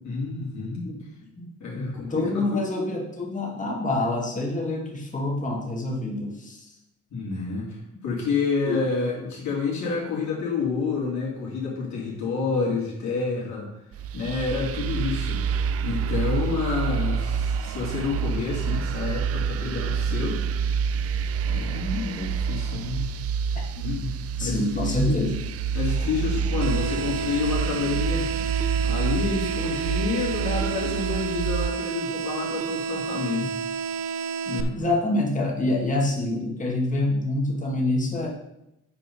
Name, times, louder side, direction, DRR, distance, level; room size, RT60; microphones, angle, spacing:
voice 1, 0.0-0.8 1.6-2.6 7.1-13.7 14.1-20.4 21.4-23.1 23.7-24.1 24.4-25.2 25.7-28.3 28.8-33.5 34.5-34.7, left 4 dB, 65° left, -4 dB, 3.0 m, -29 dB
voice 2, 0.8-6.7 8.6-8.8 24.4-25.4 34.7-38.3, left 2 dB, 25° left, -2 dB, 2.2 m, -27 dB
sound 1, 13.9-31.7, right 6 dB, 55° right, 0.4 m, -28 dB
sound 2, 26.6-34.6, right 6 dB, 85° right, 0.7 m, -30 dB
8.9 x 4.2 x 5.5 m, 0.87 s
cardioid pair, 90°, 30 cm